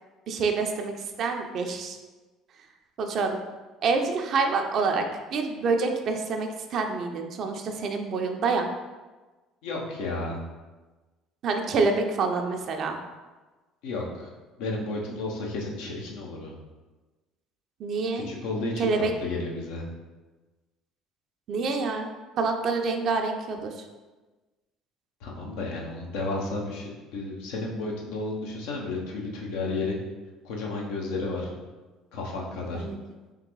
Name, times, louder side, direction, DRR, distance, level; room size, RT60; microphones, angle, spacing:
voice 1, 0.3-2.0 3.0-3.4 3.8-5.1 5.3-8.7 11.4-13.0 17.8-18.3 18.8-19.1 21.5-22.1 22.4-23.8 32.7-33.0, right 4 dB, 55° right, 4 dB, 0.5 m, -27 dB
voice 2, 9.6-10.4 13.8-14.3 14.6-16.5 18.1-18.9 19.2-19.8 25.2-30.0 30.4-31.5 32.1-32.9, left 2 dB, 70° left, -1 dB, 0.8 m, -32 dB
3.7 x 3.4 x 3.1 m, 1.2 s
hypercardioid pair, 65°, 0 cm